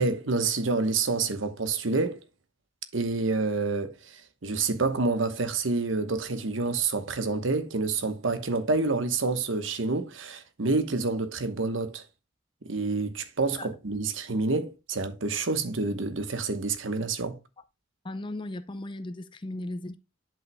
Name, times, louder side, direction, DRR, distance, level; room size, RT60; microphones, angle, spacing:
voice 1, 0.0-2.2 2.9-12.0 12.6-17.4, right 3 dB, 75° right, 1.1 m, -28 dB
voice 2, 18.0-20.0, left 1 dB, 25° left, 0.5 m, -36 dB
11.0 x 5.6 x 2.2 m
head